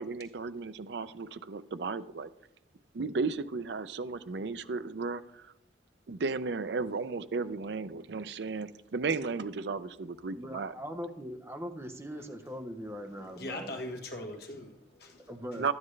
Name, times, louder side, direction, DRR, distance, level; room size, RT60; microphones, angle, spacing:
voice 1, 0.0-2.3 2.9-5.5 6.1-10.7 15.6-15.7, right 4 dB, 65° right, 0.5 m, -34 dB
voice 2, 10.3-13.7 15.3-15.7, equal, 15° right, 0.7 m, -41 dB
voice 3, 13.0-15.3, left 1 dB, 55° left, 1.3 m, -41 dB
12.0 x 9.6 x 3.2 m
head